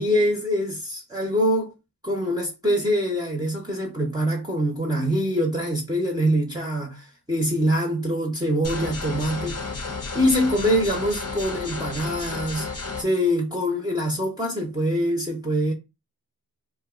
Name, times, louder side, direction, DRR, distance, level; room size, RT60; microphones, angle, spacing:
voice 1, 0.0-1.7 2.0-9.6 10.1-12.7 13.0-15.7, equal, 10° right, 0.8 m, -24 dB
sound 1, 8.6-13.0, left 3 dB, 40° left, 0.7 m, -32 dB
2.5 x 2.3 x 3.6 m
cardioid pair, 55°, 40 cm